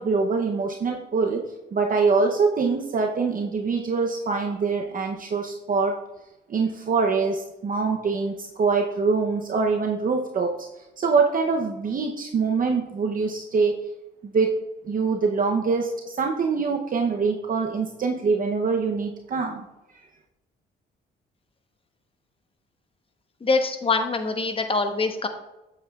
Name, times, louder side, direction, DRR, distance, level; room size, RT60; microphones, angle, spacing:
voice 1, 0.0-1.4 1.7-6.0 6.5-10.7 11.0-13.8 14.2-19.6, right 4 dB, 45° right, 2 dB, 0.8 m, -24 dB
voice 2, 23.4-25.3, left 3 dB, 25° left, 6 dB, 1.0 m, -24 dB
8.3 x 8.0 x 2.4 m, 0.95 s
cardioid pair, 90°, 20 cm